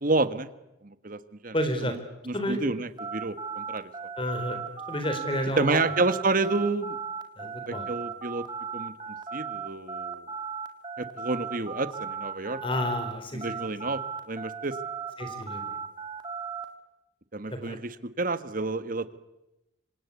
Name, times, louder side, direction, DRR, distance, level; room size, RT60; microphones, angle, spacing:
voice 1, 0.0-0.5 0.8-1.5 2.3-3.9 5.6-7.0 7.7-8.4 8.7-8.9 9.3-10.2 11.0-12.6 13.3-14.0 14.3-14.8 17.3-17.9 18.2-19.2, right 3 dB, 45° right, 13 dB, 1.4 m, -29 dB
voice 2, 1.5-2.0 2.3-2.6 4.2-5.8 7.4-7.9 12.6-13.7 15.2-15.8 17.5-17.8, left 1 dB, 25° left, 8 dB, 3.9 m, -31 dB
sound 1, 3.0-13.1 13.4-16.7, right 6 dB, 20° right, 2.3 m, -36 dB
26.5 x 26.0 x 8.3 m, 0.95 s
head